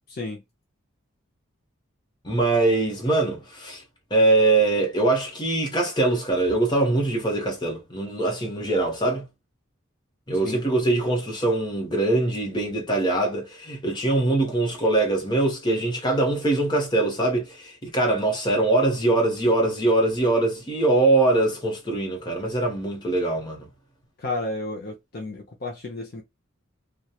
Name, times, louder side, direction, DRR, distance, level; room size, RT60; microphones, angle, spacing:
voice 1, 0.1-0.4 10.4-10.6 24.2-26.2, left 2 dB, 45° left, 0.5 m, -32 dB
voice 2, 2.2-3.8 4.1-9.2 10.3-23.6, right 2 dB, 20° left, 0.9 m, -22 dB
2.8 x 2.2 x 2.2 m
head